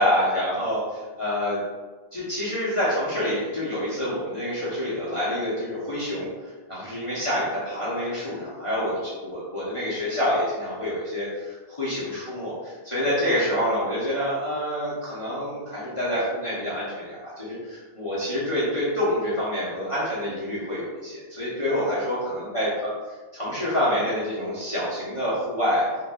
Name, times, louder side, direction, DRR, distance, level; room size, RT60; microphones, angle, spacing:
voice 1, 0.0-1.6 2.1-22.7 23.3-25.8, left 1 dB, 35° left, -10 dB, 0.9 m, -27 dB
4.3 x 2.8 x 2.3 m, 1.3 s
omnidirectional pair, 1.1 m